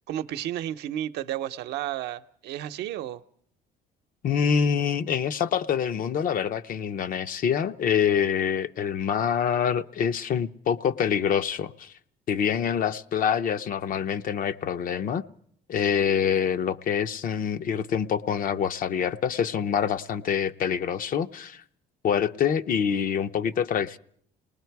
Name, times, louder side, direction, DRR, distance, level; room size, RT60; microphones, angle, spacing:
voice 1, 0.1-3.2, right 12 dB, 80° right, 0.8 m, -32 dB
voice 2, 4.2-11.9 12.3-15.2 15.7-21.6 22.0-24.0, left 8 dB, 55° left, 0.7 m, -26 dB
29.0 x 19.5 x 4.7 m
cardioid pair, 110°, 17 cm